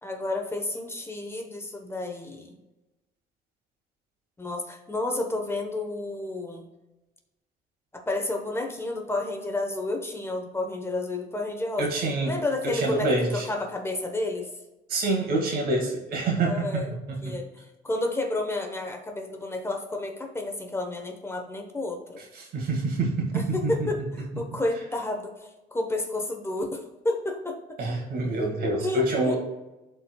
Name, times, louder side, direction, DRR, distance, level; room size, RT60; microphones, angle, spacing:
voice 1, 0.0-2.6 4.4-6.7 7.9-11.9 12.2-14.5 16.4-16.9 17.2-17.5 17.8-22.2 23.3-27.6 28.8-29.4, left 2 dB, 15° left, 2 dB, 1.0 m, -31 dB
voice 2, 11.8-12.3 12.6-13.5 14.9-16.8 17.1-17.4 22.3-23.9 27.8-29.4, right 2 dB, 65° right, 0 dB, 2.0 m, -26 dB
12.5 x 4.4 x 2.3 m, 1.0 s
cardioid pair, 110°, 17 cm